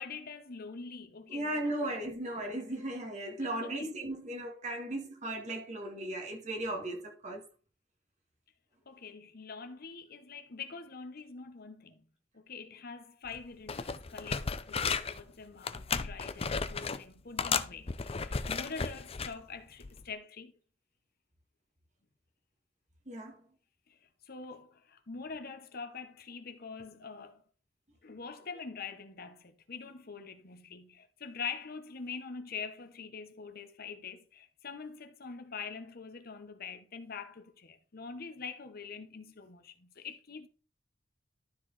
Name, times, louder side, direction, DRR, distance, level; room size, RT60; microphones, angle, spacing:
voice 1, 0.0-2.0 3.4-3.9 8.9-12.0 12.3-20.5 24.3-27.4 28.0-40.5, left 5 dB, 55° left, 1.0 m, -44 dB
voice 2, 1.3-7.4 23.1-23.4, right 1 dB, 40° right, 2.1 m, -36 dB
sound 1, 13.3-13.4 13.7-15.2 15.6-17.0 17.4-19.3 19.8-20.0, left 5 dB, 30° left, 0.6 m, -34 dB
12.5 x 4.6 x 4.1 m
head